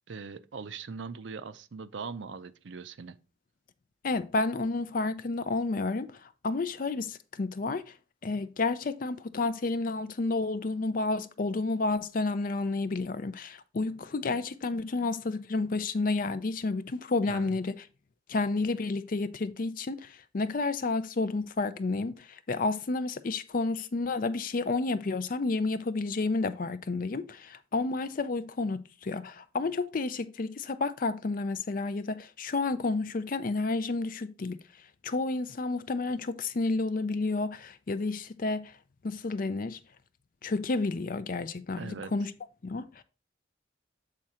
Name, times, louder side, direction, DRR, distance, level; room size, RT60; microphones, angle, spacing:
voice 1, 0.1-3.2 17.3-17.6 41.8-42.1, right 5 dB, 65° right, 0.5 m, -40 dB
voice 2, 4.0-7.9 8.2-17.7 18.3-34.6 35.0-38.8 39.0-39.8 40.4-42.3 42.6-43.0, left 3 dB, 45° left, 0.4 m, -31 dB
7.4 x 3.7 x 4.3 m
head